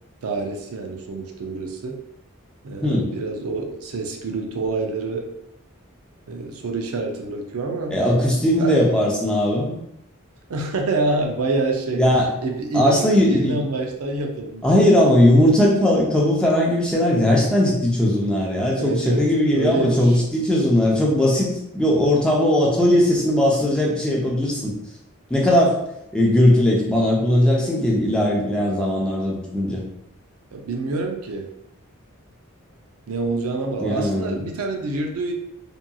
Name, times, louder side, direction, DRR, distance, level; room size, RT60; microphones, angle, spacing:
voice 1, 0.2-2.0 2.6-5.3 6.3-8.0 8.6-8.9 10.5-12.0 12.4-14.7 18.8-20.2 30.5-31.5 33.1-35.3, right 3 dB, 90° right, 2 dB, 0.5 m, -27 dB
voice 2, 7.9-9.8 11.9-12.3 12.7-13.6 14.6-21.5 21.7-24.7 25.3-25.8 26.1-29.8 33.8-34.4, left 1 dB, 5° left, -3 dB, 0.4 m, -18 dB
2.8 x 2.5 x 2.2 m, 0.80 s
head